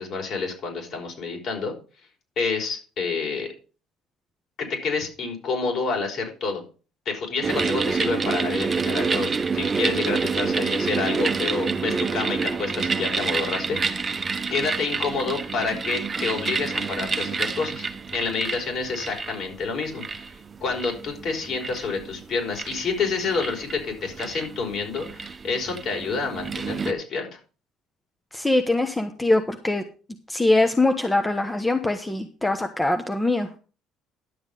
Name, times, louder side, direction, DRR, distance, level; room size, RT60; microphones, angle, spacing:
voice 1, 0.0-1.7 2.4-3.5 4.6-6.6 7.0-14.2 14.5-17.8 18.1-20.0 20.6-27.3, left 4 dB, 55° left, 1 dB, 5.1 m, -28 dB
sound 1, 7.4-26.9, right 5 dB, 25° right, 1.0 m, -28 dB
voice 2, 28.3-29.8 30.3-33.5, left 2 dB, 10° left, 7 dB, 1.1 m, -22 dB
11.0 x 7.2 x 5.4 m, 0.36 s
cardioid pair, 105°, 0 cm